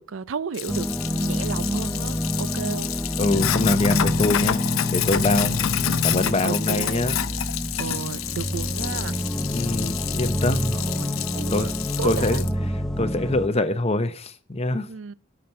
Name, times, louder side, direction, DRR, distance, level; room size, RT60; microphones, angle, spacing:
voice 1, 0.0-2.9 5.3-5.8 6.4-7.1 7.8-9.3 10.7-11.7 12.0-12.4 14.9-15.1, right 6 dB, 70° right, 0.4 m, -33 dB
Sink (filling or washing), 0.5-12.5, left 9 dB, 90° left, 0.6 m, -28 dB
sound 1, 0.7-13.5, equal, ahead, 0.6 m, -28 dB
voice 2, 3.2-4.6 4.9-5.5 6.0-7.2 7.7-7.8 9.5-10.8 11.5-11.7 12.0-12.4 13.0-14.9, left 2 dB, 30° left, 0.8 m, -24 dB
13.0 x 6.0 x 4.3 m
head